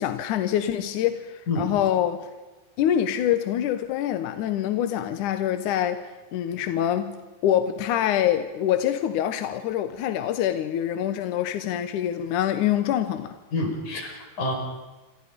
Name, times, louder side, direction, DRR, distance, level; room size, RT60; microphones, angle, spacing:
voice 1, 0.0-2.3 2.8-13.4, left 10 dB, 70° left, 2.1 m, -25 dB
voice 2, 13.5-14.5, left 2 dB, 50° left, 6.3 m, -28 dB
28.0 x 26.0 x 5.2 m
omnidirectional pair, 4.5 m